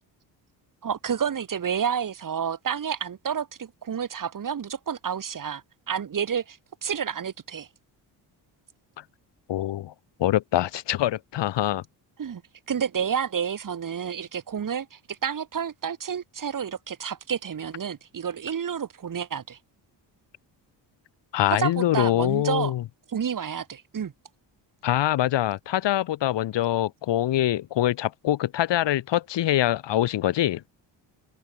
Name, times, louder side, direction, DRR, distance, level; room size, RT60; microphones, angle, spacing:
voice 1, 0.8-7.7 12.2-12.4 12.7-19.6 21.5-22.7 23.1-24.1, right 7 dB, 45° right, 3.7 m, -30 dB
voice 2, 9.5-9.9 10.2-11.8 21.3-22.8 24.8-30.6, left 13 dB, 70° left, 1.5 m, -24 dB
open air
cardioid pair, 110°, 44 cm